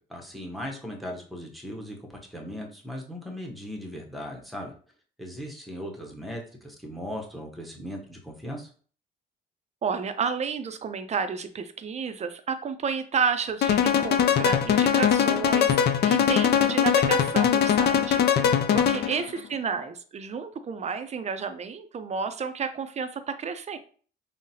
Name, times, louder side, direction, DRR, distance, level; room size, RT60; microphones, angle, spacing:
voice 1, 0.0-4.7 5.2-8.7 18.7-19.0, equal, ahead, 1 dB, 0.8 m, -38 dB
voice 2, 9.8-18.3 18.7-23.8, right 6 dB, 35° right, 10 dB, 0.4 m, -31 dB
sound 1, 13.6-19.2, left 8 dB, 55° left, 0.4 m, -21 dB
3.8 x 2.0 x 2.7 m, 0.43 s
cardioid pair, 90°, 20 cm